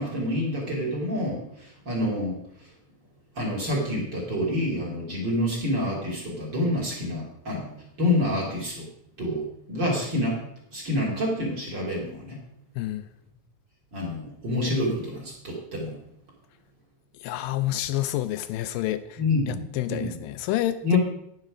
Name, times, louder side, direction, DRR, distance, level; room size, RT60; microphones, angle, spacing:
voice 1, 0.0-2.4 3.4-7.7 8.0-8.9 9.2-10.4 10.7-12.4 13.9-15.9 19.2-20.2 20.8-21.0, left 1 dB, 30° right, -3 dB, 3.4 m, -27 dB
voice 2, 17.2-19.2 19.5-21.0, left 14 dB, 80° left, 11 dB, 2.2 m, -28 dB
10.5 x 10.0 x 5.0 m, 0.72 s
omnidirectional pair, 4.1 m